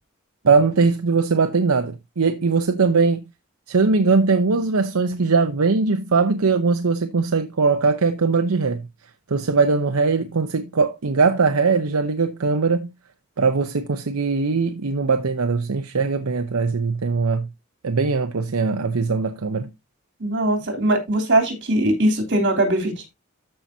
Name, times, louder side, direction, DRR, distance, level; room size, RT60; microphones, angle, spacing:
voice 1, 0.4-3.2 3.7-8.9 9.3-12.9 13.4-17.5 17.8-19.7, right 4 dB, 80° right, 0.7 m, -20 dB
voice 2, 20.2-23.1, right 1 dB, 55° right, 3.3 m, -21 dB
13.5 x 5.6 x 2.7 m
head